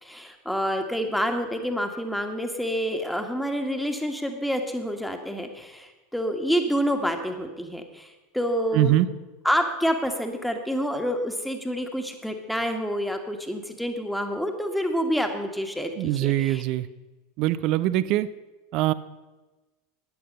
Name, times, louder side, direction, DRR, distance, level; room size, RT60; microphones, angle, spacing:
voice 1, 0.0-9.0 9.4-16.6, equal, ahead, 5 dB, 1.7 m, -28 dB
voice 2, 8.7-9.1 16.0-16.9 17.4-18.3 18.7-18.9, right 14 dB, 45° right, 16 dB, 0.6 m, -22 dB
14.0 x 10.5 x 5.4 m, 1.2 s
figure-of-eight pair, 80°, 0 cm